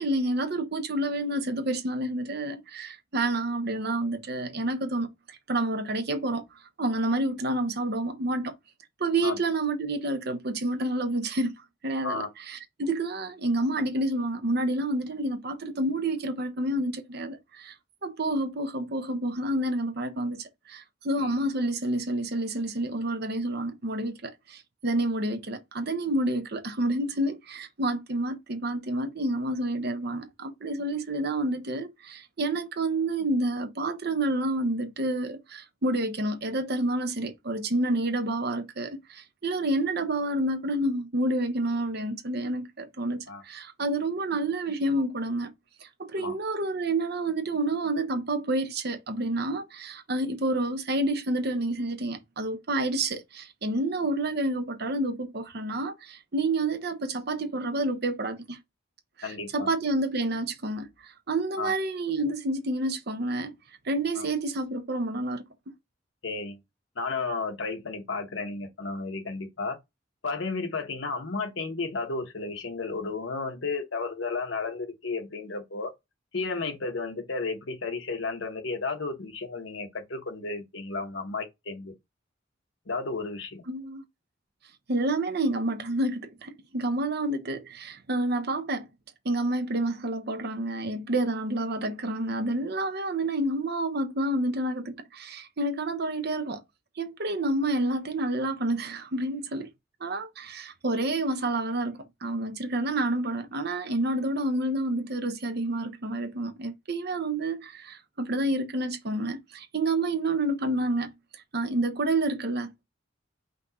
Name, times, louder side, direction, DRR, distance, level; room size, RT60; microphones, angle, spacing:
voice 1, 0.0-6.4 6.8-8.5 9.0-11.5 11.8-17.7 18.0-45.5 45.8-58.6 59.2-63.5 63.8-65.4 83.7-84.0 84.9-88.9 89.2-96.6 97.0-99.7 100.0-112.8, right 1 dB, 55° right, 0.8 m, -29 dB
voice 2, 43.1-43.4 46.2-46.3 59.2-59.7 61.6-61.7 64.2-64.3 66.2-66.6 67.0-69.8 70.2-75.9 76.3-81.9 82.9-83.6, left 3 dB, 70° left, 1.1 m, -33 dB
5.1 x 2.4 x 3.9 m
head